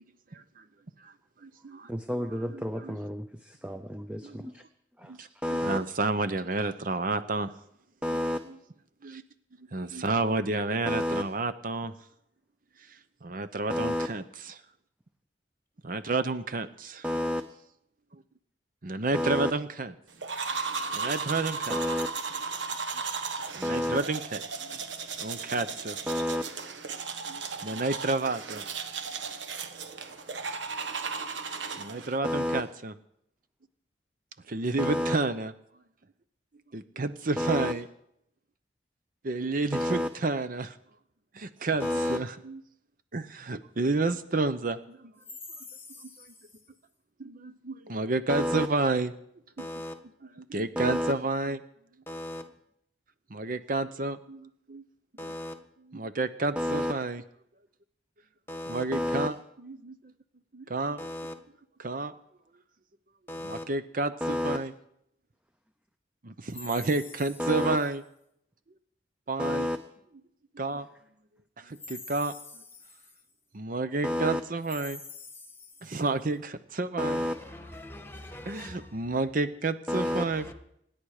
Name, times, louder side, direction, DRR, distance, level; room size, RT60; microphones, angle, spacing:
voice 1, 0.3-0.6 1.0-1.1 1.4-1.9 2.5-3.0 4.2-4.4 5.1-7.5 8.5-8.6 9.0-9.2 9.7-11.9 12.9-14.5 15.8-17.0 18.1-18.2 18.8-19.9 20.9-21.8 23.6-24.7 25.2-26.0 27.3-28.6 31.7-32.9 34.5-35.5 36.7-37.9 39.2-40.8 41.3-42.6 43.1-45.1 46.0-46.3 47.2-49.1 50.4-51.6 53.3-54.8 55.9-57.2 58.7-59.9 60.5-61.0 61.8-62.1 63.4-64.7 66.2-68.0 69.3-69.7 70.5-70.9 71.6-72.6 73.5-75.0 75.8-77.2 78.5-80.5, right 3 dB, 50° right, 0.7 m, -30 dB
voice 2, 1.9-4.6 5.0-5.1 5.4-5.8 8.0-8.4 10.9-11.2 13.7-14.1 17.0-17.4 19.1-19.5 21.7-22.1 23.6-24.0 26.1-26.4 32.2-32.6 34.8-35.1 37.4-37.7 39.7-40.1 41.8-42.2 48.3-48.7 50.8-51.1 56.6-56.9 58.9-59.3 64.2-64.6 67.4-67.8 69.4-69.8 74.0-74.4 77.0-77.3 79.9-80.2, left 1 dB, 5° right, 0.6 m, -29 dB
sound 1, 20.2-32.2, right 5 dB, 80° right, 1.3 m, -35 dB
voice 3, 41.8-42.2 45.7-46.1 49.6-49.9 52.1-52.4 55.2-55.5 58.5-58.8 61.0-61.3 63.3-63.6 75.4-75.5 77.1-79.1 80.0-80.5, left 1 dB, 10° left, 1.5 m, -40 dB
25.5 x 10.5 x 4.9 m
head